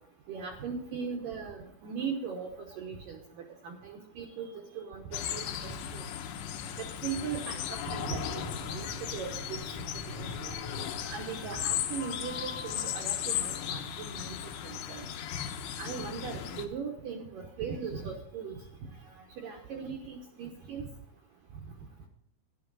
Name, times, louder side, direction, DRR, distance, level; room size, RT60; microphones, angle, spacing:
voice 1, 0.3-2.5 2.8-4.5 4.8-5.0 5.3-6.0 6.8-7.6 7.9-9.6 10.2-10.5 11.1-15.1 15.8-18.6 19.4-20.8, right 6 dB, 75° right, 2 dB, 2.1 m, -39 dB
sound 1, 5.1-16.7, left 10 dB, 90° left, 3.4 m, -36 dB
sound 2, 7.6-12.9, left 1 dB, 20° left, 1.4 m, -45 dB
13.5 x 10.5 x 4.0 m, 0.73 s
omnidirectional pair, 5.3 m